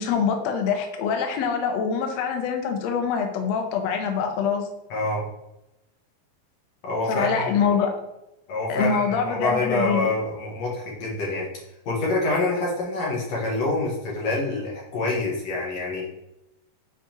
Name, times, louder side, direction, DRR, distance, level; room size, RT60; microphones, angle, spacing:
voice 1, 0.0-4.7 7.1-7.9 8.7-10.1, left 6 dB, 90° left, 4 dB, 1.5 m, -24 dB
voice 2, 4.9-5.2 6.8-7.5 8.5-11.5 11.9-16.1, left 2 dB, 60° left, -3 dB, 2.0 m, -26 dB
7.3 x 5.0 x 2.9 m, 0.91 s
omnidirectional pair, 4.1 m